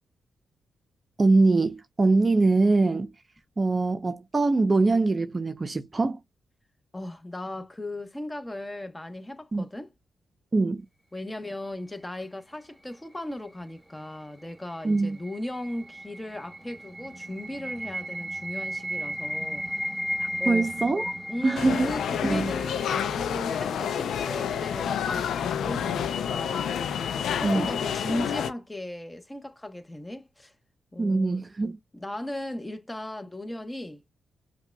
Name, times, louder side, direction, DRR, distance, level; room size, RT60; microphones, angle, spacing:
voice 1, 1.2-3.1 3.6-6.2 9.5-9.7 10.5-10.9 14.8-15.2 20.2-21.1 21.4-21.9 22.2-22.5 27.4-27.7 31.0-31.8, right 3 dB, 35° right, 0.7 m, -23 dB
voice 2, 6.9-9.9 11.1-19.7 20.4-20.7 21.3-26.7 27.4-30.5 30.9-31.4 31.9-34.0, left 1 dB, 15° left, 1.1 m, -37 dB
sound 1, 14.5-23.5, equal, 15° right, 1.2 m, -35 dB
sound 2, 21.5-28.5, left 8 dB, 80° left, 0.5 m, -29 dB
5.7 x 2.4 x 2.2 m
supercardioid pair, 55°, 0 cm